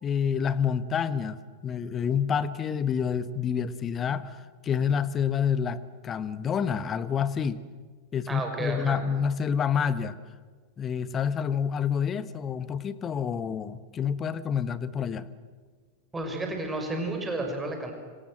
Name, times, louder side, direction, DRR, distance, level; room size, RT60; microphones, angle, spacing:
voice 1, 0.0-7.6 8.1-10.2 10.8-15.3, left 7 dB, 25° left, 15 dB, 1.3 m, -28 dB
voice 2, 8.3-9.0 16.1-17.9, right 2 dB, 15° right, 4 dB, 6.2 m, -32 dB
26.0 x 25.0 x 7.8 m, 1.5 s
figure-of-eight pair, 90°, 0 cm